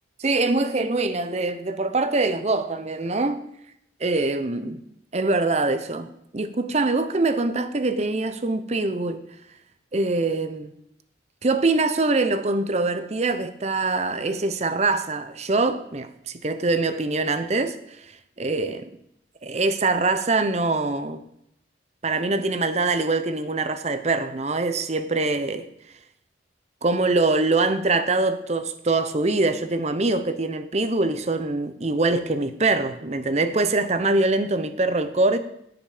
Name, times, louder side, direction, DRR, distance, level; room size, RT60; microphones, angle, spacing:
voice 1, 0.2-3.4 4.0-4.8 5.1-9.2 9.9-10.7 11.4-16.1 16.4-17.8 18.4-18.9 19.4-21.2 22.0-25.7 26.8-35.4, right 3 dB, 35° right, 0.7 m, -23 dB
17.0 x 6.0 x 5.0 m
head